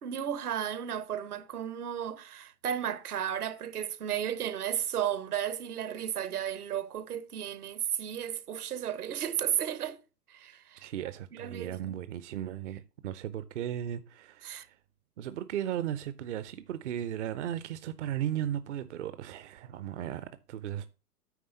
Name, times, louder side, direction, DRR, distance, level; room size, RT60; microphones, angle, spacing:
voice 1, 0.0-10.0 10.3-10.9 11.3-12.0 14.4-14.7, right 9 dB, 70° right, 1.1 m, -34 dB
voice 2, 10.8-14.8 15.2-20.9, right 11 dB, 50° right, 0.6 m, -36 dB
9.5 x 3.6 x 6.8 m
figure-of-eight pair, 110°, 47 cm